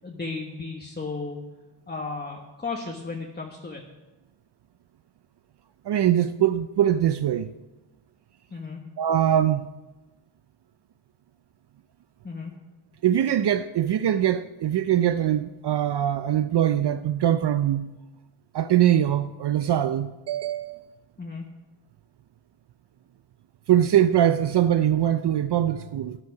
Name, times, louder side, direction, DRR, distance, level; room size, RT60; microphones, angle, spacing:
voice 1, 0.0-1.4 1.9-3.8 8.5-8.9 12.2-12.5 21.2-21.4, left 4 dB, 20° left, 1.3 m, -34 dB
voice 2, 5.9-7.5 9.0-9.7 13.0-17.9 18.5-20.8 23.7-26.2, right 11 dB, 55° right, 0.6 m, -22 dB
13.0 x 9.5 x 5.8 m
cardioid pair, 100°, 49 cm